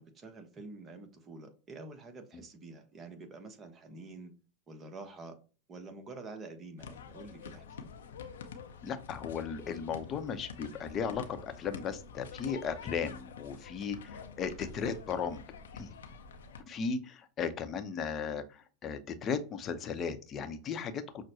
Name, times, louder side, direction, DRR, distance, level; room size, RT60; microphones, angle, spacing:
voice 1, 0.0-4.3 4.7-5.4 5.7-7.9, right 3 dB, 30° right, 1.0 m, -48 dB
sound 1, 6.8-16.6, left 6 dB, 85° left, 0.6 m, -47 dB
voice 2, 8.8-15.4 15.7-16.0 16.7-21.2, left 6 dB, 35° left, 0.7 m, -36 dB
6.0 x 2.1 x 2.8 m
hypercardioid pair, 100°, 0 cm